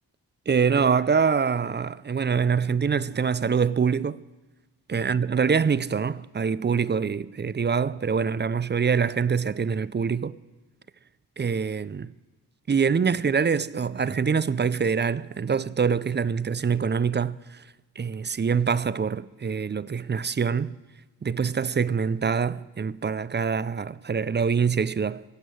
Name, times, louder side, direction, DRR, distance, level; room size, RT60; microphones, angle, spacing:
voice 1, 0.5-4.2 4.9-10.4 11.4-12.1 12.7-17.6 18.0-20.8 21.2-25.2, right 6 dB, 30° right, 0.4 m, -25 dB
15.5 x 8.1 x 9.3 m
wide cardioid pair, 100°, 40 cm